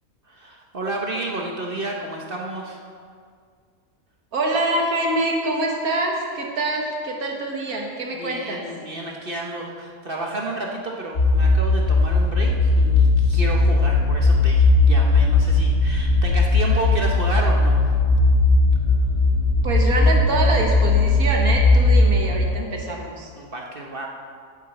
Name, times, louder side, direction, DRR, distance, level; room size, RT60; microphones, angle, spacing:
voice 1, 0.2-2.8 8.1-17.9 23.4-24.1, right 2 dB, 40° right, 0 dB, 1.2 m, -31 dB
voice 2, 4.3-8.6 19.6-23.3, right 2 dB, 85° right, 0 dB, 2.0 m, -25 dB
sound 1, 11.1-22.5, left 3 dB, 50° left, 1.7 m, -18 dB
9.0 x 7.4 x 7.7 m, 2.1 s
omnidirectional pair, 1.5 m